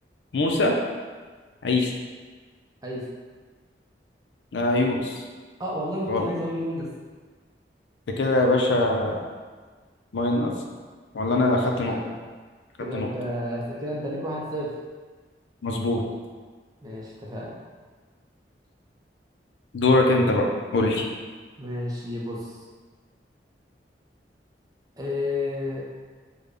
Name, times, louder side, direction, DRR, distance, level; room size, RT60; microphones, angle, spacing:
voice 1, 0.3-0.7 1.6-1.9 4.5-5.2 6.1-6.3 8.2-9.2 10.1-10.5 11.1-12.0 12.9-13.1 15.6-16.0 19.7-20.5 20.7-21.1, left 2 dB, 80° left, 1 dB, 0.4 m, -22 dB
voice 2, 5.6-6.9 11.3-12.2 12.8-14.7 16.8-17.6 21.6-22.6 25.0-25.8, left 1 dB, 20° right, -3 dB, 0.5 m, -31 dB
3.3 x 2.2 x 3.7 m, 1.5 s
head